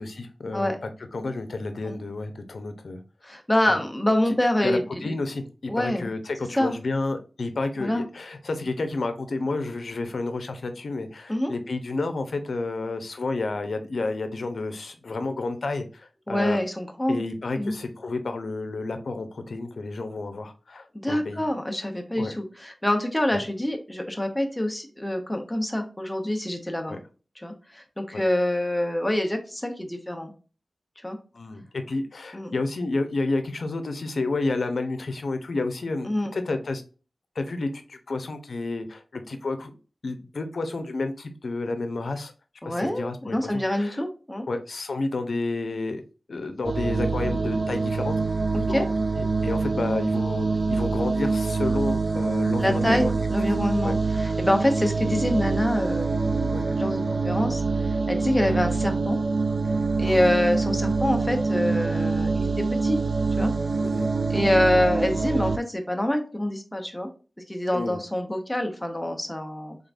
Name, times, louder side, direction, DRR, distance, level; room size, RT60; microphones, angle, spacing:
voice 1, 0.0-3.0 3.7-3.8 4.6-16.6 17.1-21.4 22.2-22.3 26.9-27.0 28.1-28.2 31.3-36.8 37.4-39.7 40.0-42.3 42.6-44.0 44.5-46.0 46.3-48.1 48.6-48.9 49.2-53.5 53.8-53.9 54.2-54.4 56.5-56.7 58.5-58.6 60.1-60.4 63.8-64.1 67.7-68.0, left 3 dB, 80° left, 8 dB, 0.7 m, -30 dB
voice 2, 3.2-5.1 5.7-6.1 6.6-6.7 7.8-8.0 11.3-11.5 16.3-17.2 17.6-17.7 20.9-26.9 27.4-30.3 31.0-31.2 32.3-32.5 36.1-36.3 42.6-44.5 48.5-48.8 52.6-57.6 58.1-59.2 60.0-63.0 63.4-63.5 64.3-67.1 67.5-69.8, left 1 dB, 10° left, 4 dB, 0.8 m, -26 dB
sound 1, 46.6-65.6, right 4 dB, 60° right, 0.3 m, -25 dB
3.7 x 3.5 x 2.5 m, 0.36 s
wide cardioid pair, 80°, 0 cm